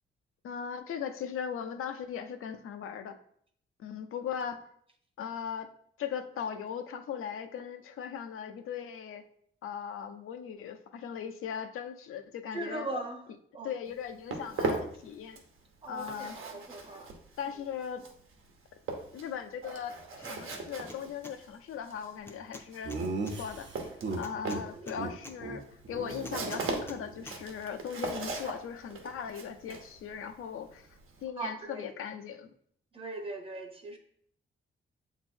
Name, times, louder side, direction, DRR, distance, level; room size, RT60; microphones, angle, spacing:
voice 1, 0.4-3.2 3.8-4.6 5.2-5.7 6.0-9.2 9.6-12.9 13.6-15.4 15.9-16.4 17.4-18.0 19.1-23.7 24.1-30.9 31.2-32.5, left 7 dB, 85° left, 8 dB, 0.6 m, -39 dB
voice 2, 12.5-13.2 13.5-13.8 15.8-17.1 17.4-17.6 24.6-25.0 31.3-31.9 32.9-34.0, right 2 dB, 25° right, 5 dB, 0.8 m, -40 dB
Walk footsteps, 13.9-15.6 15.8-31.2, right 3 dB, 75° right, 1.1 m, -39 dB
sound 1, 20.2-20.6 20.9-21.3 22.3-23.4 24.2-25.4 26.2-27.0 27.3-27.4, left 1 dB, 10° left, 0.5 m, -47 dB
Laughter, 22.9-24.6 24.9-25.1 25.4-25.6 25.9-27.4, right 3 dB, 60° right, 0.8 m, -37 dB
7.7 x 3.0 x 4.3 m, 0.65 s
wide cardioid pair, 135°, 21 cm